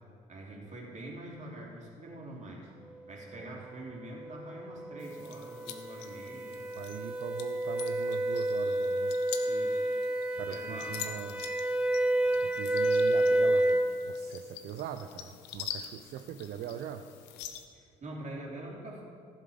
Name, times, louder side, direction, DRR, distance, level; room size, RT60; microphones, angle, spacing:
voice 1, 0.3-2.7 3.1-6.6 9.5-10.0 10.5-11.2 12.3-12.4 17.7-19.0, right 1 dB, 45° right, -3 dB, 3.4 m, -45 dB
sound 1, 4.0-14.0, right 1 dB, 5° right, 0.9 m, -30 dB
gentle tinkling bells, 5.0-17.7, left 10 dB, 75° left, 0.8 m, -46 dB
voice 2, 6.7-9.2 10.4-11.4 12.4-17.0, right 9 dB, 60° right, 8 dB, 0.6 m, -41 dB
14.5 x 7.4 x 5.1 m, 2.3 s
hypercardioid pair, 50°, 18 cm